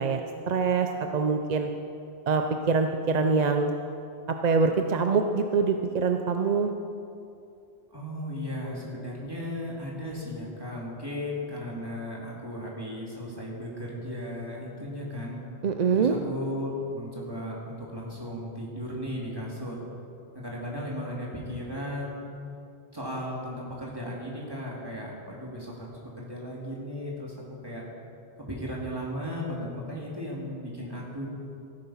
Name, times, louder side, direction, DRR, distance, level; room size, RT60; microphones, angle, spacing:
voice 1, 0.0-1.7 2.3-3.7 4.3-6.7 15.6-16.2, right 5 dB, 50° right, 5 dB, 0.6 m, -25 dB
voice 2, 7.9-15.4 15.9-19.8 20.3-22.3 22.9-27.3 27.6-27.8 28.5-31.3, left 1 dB, 20° right, -4 dB, 2.5 m, -36 dB
15.0 x 9.0 x 5.6 m, 2.6 s
omnidirectional pair, 1.1 m